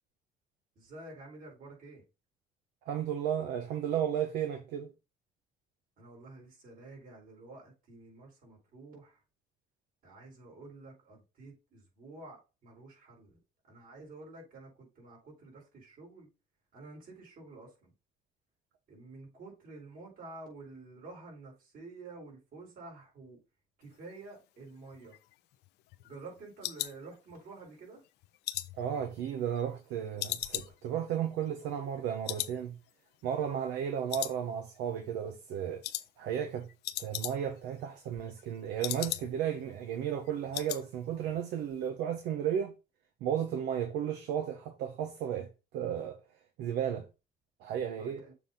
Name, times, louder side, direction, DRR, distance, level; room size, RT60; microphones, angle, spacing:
voice 1, 0.8-2.0 6.0-9.2 10.0-13.4 13.7-16.3 16.7-17.9 18.9-23.4 23.8-25.2 26.0-28.0 47.9-48.3, right 3 dB, 60° right, 4.5 m, -50 dB
voice 2, 2.8-4.9 28.8-32.8 33.2-35.8 36.2-36.7 37.0-42.7 43.2-46.2 46.6-47.1 47.6-48.2, right 9 dB, 90° right, 1.0 m, -34 dB
sound 1, 24.9-27.7 28.0-29.8 30.2-32.6 32.9-33.0 33.4-33.8 34.1-34.9 35.2-35.4 35.8-36.1 36.4-36.5 36.7-37.7 38.0-39.6 39.9-40.0 40.2-40.9 41.1-41.4 41.7-41.8, left 15 dB, 80° left, 0.6 m, -39 dB
7.0 x 4.0 x 3.9 m
cardioid pair, 110°, 17 cm